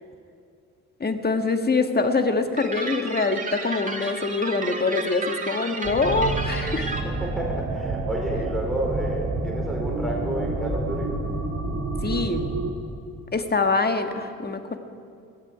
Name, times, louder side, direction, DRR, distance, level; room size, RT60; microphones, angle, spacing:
voice 1, 1.0-6.9 12.0-12.5 13.3-14.8, left 3 dB, 25° left, 7 dB, 1.6 m, -24 dB
sound 1, 2.6-7.0, right 3 dB, 20° right, 2.0 m, -33 dB
sound 2, 5.8-12.7, right 3 dB, 45° right, 3.0 m, -29 dB
voice 2, 6.7-11.1, right 1 dB, ahead, -2 dB, 4.7 m, -30 dB
18.5 x 13.5 x 5.1 m, 2.4 s
hypercardioid pair, 50°, 42 cm